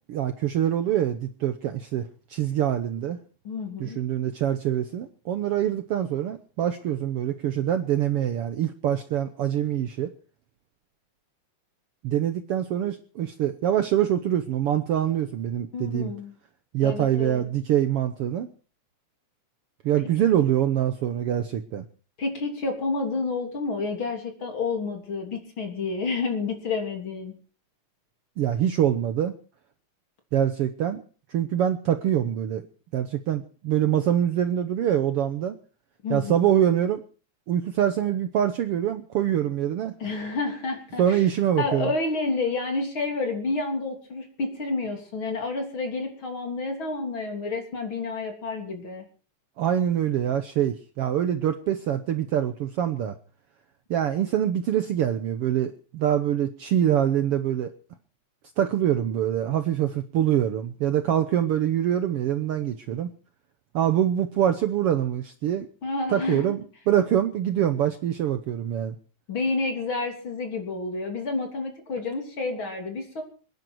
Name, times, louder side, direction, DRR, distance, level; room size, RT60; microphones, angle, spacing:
voice 1, 0.1-3.2 3.8-10.1 12.0-16.1 16.7-18.5 19.8-21.8 28.4-29.3 30.3-31.0 31.3-32.6 32.9-35.6 36.1-37.0 37.5-39.9 41.0-41.9 49.6-53.1 53.9-57.7 58.6-63.1 63.7-65.7 66.1-66.6 66.9-68.9, right 10 dB, 65° right, 9 dB, 1.6 m, -24 dB
voice 2, 3.4-4.0 15.7-16.3 16.8-17.5 22.2-27.3 36.0-36.5 40.0-41.2 41.6-49.0 65.8-66.5 69.3-73.2, left 3 dB, 45° left, 3 dB, 3.8 m, -29 dB
26.5 x 10.5 x 4.6 m, 0.40 s
omnidirectional pair, 3.4 m